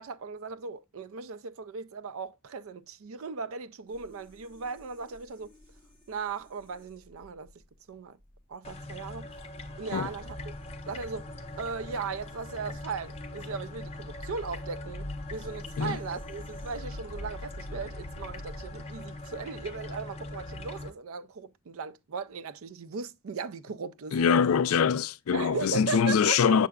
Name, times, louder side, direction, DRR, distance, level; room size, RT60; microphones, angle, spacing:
voice 1, 0.0-5.5 6.1-7.5 7.9-8.2 8.5-9.3 9.8-10.4 10.9-11.3 11.6-24.4 25.3-26.6, right 5 dB, 65° right, 0.4 m, -37 dB
sound 1, 3.9-16.8, left 1 dB, 10° left, 5.2 m, -57 dB
sound 2, 8.6-20.9, left 1 dB, 30° left, 0.7 m, -41 dB
voice 2, 24.1-26.7, left 6 dB, 75° left, 0.4 m, -24 dB
7.4 x 6.7 x 2.3 m
head